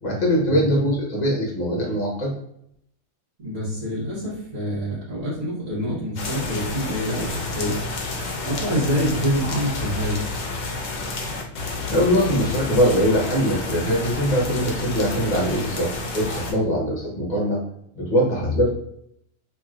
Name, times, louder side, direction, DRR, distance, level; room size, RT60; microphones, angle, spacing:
voice 1, 0.0-2.3 11.9-17.7 18.0-18.7, equal, 35° left, -3 dB, 0.9 m, -22 dB
voice 2, 3.4-7.8 8.4-10.2 16.5-16.7, equal, 55° right, -7 dB, 1.4 m, -26 dB
sound 1, 6.2-16.5, left 3 dB, 70° left, 1.0 m, -30 dB
3.0 x 2.8 x 2.4 m, 0.72 s
omnidirectional pair, 1.5 m